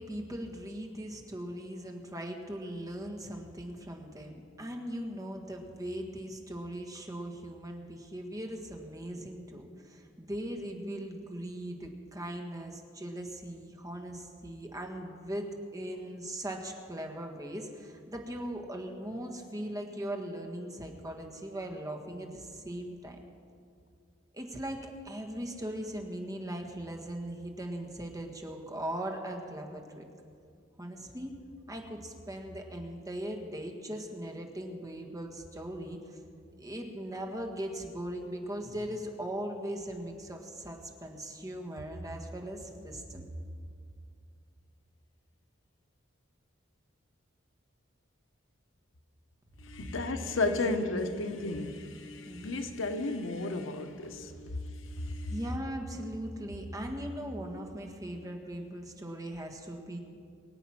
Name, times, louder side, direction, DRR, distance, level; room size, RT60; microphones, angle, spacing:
voice 1, 0.0-23.2 24.3-30.0 30.8-31.3 31.7-36.2 36.6-43.2 49.8-50.4 52.3-52.6 54.4-54.5 55.3-60.0, right 1 dB, 20° right, 2 dB, 1.6 m, -39 dB
voice 2, 49.6-55.4, left 2 dB, 80° left, 7 dB, 1.0 m, -33 dB
23.5 x 8.1 x 6.0 m, 2.3 s
head